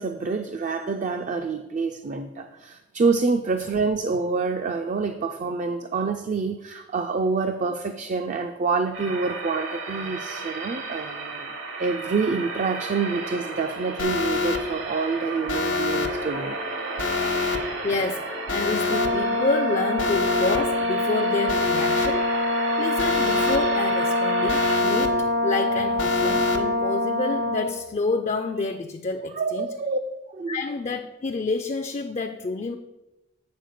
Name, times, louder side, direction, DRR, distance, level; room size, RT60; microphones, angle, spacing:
voice 1, 0.0-11.5 11.8-17.3 29.3-30.0 30.3-30.6, right 4 dB, 40° right, 0.4 m, -27 dB
sound 1, 8.9-24.8, right 3 dB, 80° right, 1.4 m, -33 dB
Alarm, 14.0-14.6 15.5-16.1 17.0-17.6 18.5-19.1 20.0-20.6 21.5-22.1 23.0-23.6 24.5-25.1 26.0-26.6, left 4 dB, 75° left, 0.9 m, -26 dB
voice 2, 17.8-29.7 30.5-32.8, left 3 dB, 35° left, 0.4 m, -29 dB
Brass instrument, 18.9-27.8, left 1 dB, 60° right, 0.9 m, -25 dB
8.3 x 4.2 x 6.4 m
head